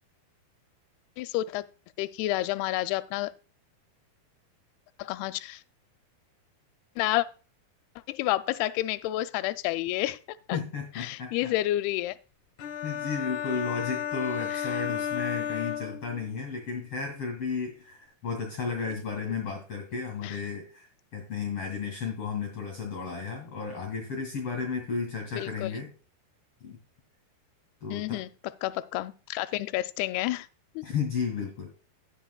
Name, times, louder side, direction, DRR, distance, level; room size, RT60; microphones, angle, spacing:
voice 1, 1.2-1.7 2.0-3.3 5.0-5.6 7.0-7.3 8.1-10.6 11.0-12.2 14.5-14.6 20.2-20.4 25.3-25.7 27.9-28.3 28.6-30.5 30.8-30.9, left 16 dB, 85° left, 2.5 m, -30 dB
voice 2, 10.5-11.5 12.8-25.9 26.6-26.8 27.8-28.2 30.8-31.7, left 5 dB, 45° left, 2.9 m, -33 dB
sound 1, 12.6-16.5, left 9 dB, 65° left, 2.1 m, -33 dB
19.0 x 6.4 x 2.3 m
omnidirectional pair, 4.5 m